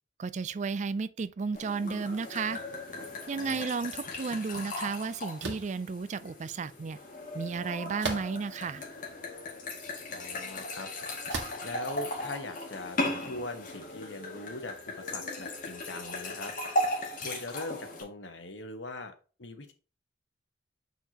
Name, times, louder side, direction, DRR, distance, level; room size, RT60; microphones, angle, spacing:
voice 1, 0.2-2.6 3.3-7.0 7.3-8.8, right 5 dB, 40° right, 0.4 m, -33 dB
sound 1, 1.5-18.0, left 1 dB, 45° left, 2.1 m, -37 dB
voice 2, 3.4-3.7 10.1-11.2 11.6-16.5 17.2-19.7, left 2 dB, 85° left, 1.2 m, -41 dB
sound 2, 5.4-5.7 8.0-8.6 9.3-9.4 11.3-11.7, right 3 dB, 80° right, 1.7 m, -35 dB
7.3 x 5.5 x 2.9 m
head